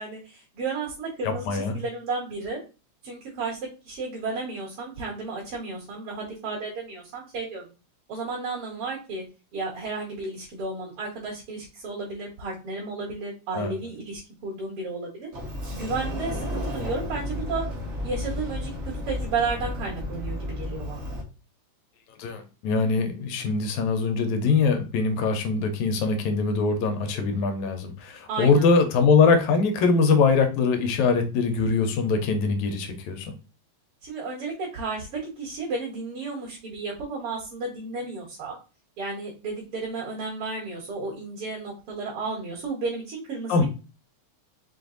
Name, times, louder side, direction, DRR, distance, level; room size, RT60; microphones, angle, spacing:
voice 1, 0.0-2.6 3.0-3.6 3.9-7.7 8.1-9.2 9.5-15.3 15.7-17.7 18.0-18.7 19.1-21.1 28.3-28.7 34.0-38.6 39.0-43.6, right 3 dB, 50° right, -5 dB, 2.5 m, -33 dB
voice 2, 1.2-1.8 13.5-13.7 22.2-33.3 43.5-43.6, left 4 dB, 85° left, 6 dB, 2.2 m, -22 dB
Sliding door, 15.3-21.2, left 1 dB, 70° right, 0.6 m, -32 dB
5.3 x 2.6 x 3.9 m, 0.32 s
omnidirectional pair, 3.3 m